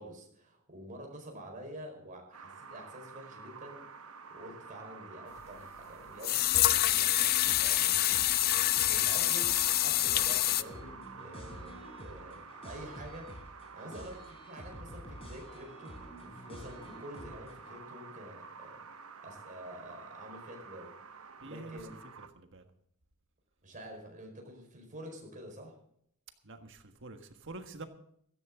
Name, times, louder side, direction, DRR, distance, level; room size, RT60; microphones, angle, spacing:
voice 1, 0.0-3.9 4.3-13.3 13.7-18.8 19.2-22.0 23.6-25.7, equal, 40° right, 2 dB, 4.7 m, -48 dB
sound 1, 2.3-22.3, right 5 dB, 75° right, 1.0 m, -50 dB
sound 2, 5.4-5.5 6.2-10.6, left 14 dB, 45° left, 0.5 m, -26 dB
sound 3, 7.5-17.8, equal, 25° left, 3.8 m, -50 dB
voice 2, 21.4-21.8 22.2-22.7 26.4-27.9, right 2 dB, 60° right, 6 dB, 1.6 m, -47 dB
16.5 x 14.5 x 3.7 m, 0.69 s
head